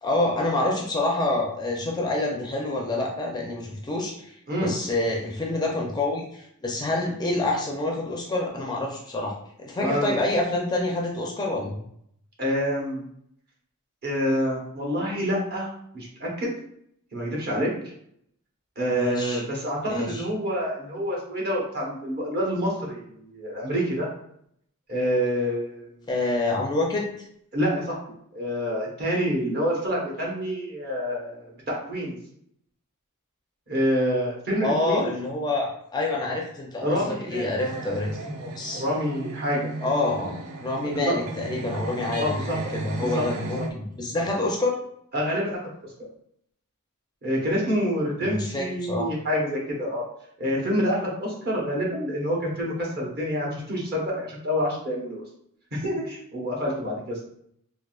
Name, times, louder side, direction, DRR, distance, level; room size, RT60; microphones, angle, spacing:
voice 1, 0.0-11.7 18.9-19.4 19.9-20.2 26.1-27.1 34.6-38.1 38.5-38.8 39.8-40.3 40.6-44.7 48.2-49.1, left 2 dB, 20° left, -1 dB, 0.4 m, -27 dB
voice 2, 9.8-10.2 12.4-13.0 14.0-16.5 17.1-17.7 18.8-24.1 24.9-26.1 27.5-28.0 28.3-32.2 33.7-35.1 36.8-37.5 38.0-39.7 40.9-41.1 42.2-42.6 43.0-43.2 43.6-43.7 45.1-45.6 47.2-50.0 50.4-55.2 55.7-57.2, equal, 45° right, -3 dB, 1.0 m, -27 dB
sound 1, 37.6-43.7, right 2 dB, 80° right, 0.4 m, -35 dB
3.6 x 2.3 x 2.3 m, 0.70 s
head